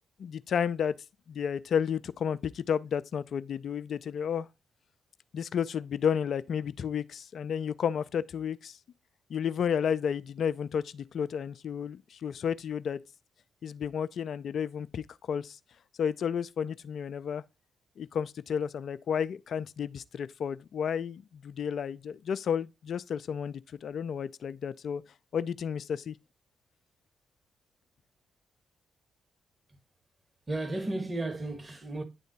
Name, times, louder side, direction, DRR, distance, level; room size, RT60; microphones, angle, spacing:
voice 1, 0.2-1.0 1.3-4.5 5.3-8.8 9.3-13.0 13.6-15.6 16.0-17.4 18.0-25.0 25.3-26.2, left 7 dB, 60° left, 0.3 m, -32 dB
voice 2, 30.5-32.0, right 2 dB, 30° right, 1.5 m, -34 dB
9.3 x 3.5 x 4.0 m
hypercardioid pair, 40°, 0 cm